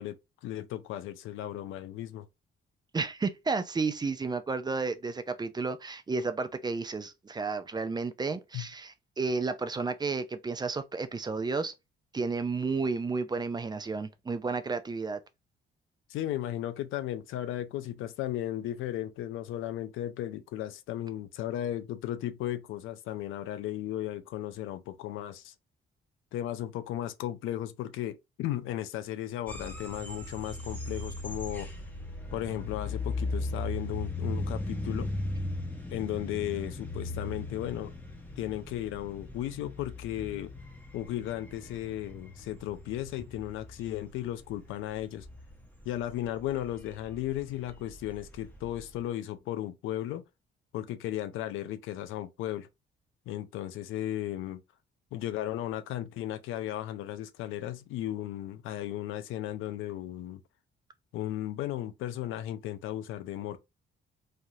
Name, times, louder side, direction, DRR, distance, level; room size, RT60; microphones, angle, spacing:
voice 1, 0.0-2.3 8.5-8.7 16.1-25.5 26.3-31.7 32.3-35.1 35.9-37.9 38.4-40.5 40.9-45.3 45.8-50.2 50.7-52.7 53.3-54.6 55.1-60.4 61.1-63.6, left 12 dB, 85° left, 0.4 m, -35 dB
voice 2, 2.9-11.7 12.1-15.2, right 4 dB, 20° right, 0.4 m, -32 dB
sound 1, 29.5-49.0, left 2 dB, 10° left, 0.8 m, -38 dB
3.2 x 2.3 x 2.7 m
cardioid pair, 90°, 20 cm